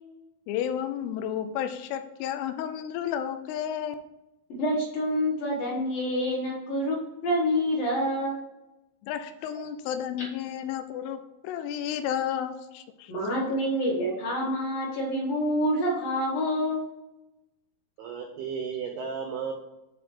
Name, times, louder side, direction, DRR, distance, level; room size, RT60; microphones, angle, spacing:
voice 1, 0.5-4.0 9.1-13.1, left 9 dB, 85° left, 9 dB, 3.1 m, -32 dB
voice 2, 4.5-8.4 13.1-16.9, equal, 60° left, -4 dB, 2.7 m, -27 dB
voice 3, 18.0-19.5, right 6 dB, 90° right, 2 dB, 2.2 m, -34 dB
8.9 x 3.2 x 6.5 m, 0.97 s
omnidirectional pair, 5.8 m